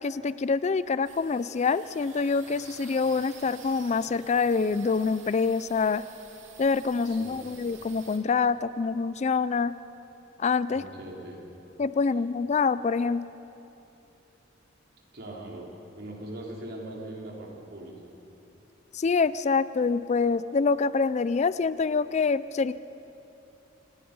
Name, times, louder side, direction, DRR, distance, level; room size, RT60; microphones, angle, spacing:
voice 1, 0.0-6.1 6.6-9.7 10.4-10.8 11.8-13.2 18.9-22.7, left 4 dB, 35° left, 16 dB, 0.4 m, -26 dB
sound 1, 1.0-8.2, right 6 dB, 75° right, 2.4 m, -50 dB
voice 2, 10.7-11.4 15.1-15.7 16.0-17.9, right 1 dB, 55° right, -2 dB, 3.8 m, -40 dB
28.0 x 19.0 x 5.4 m, 2.9 s
head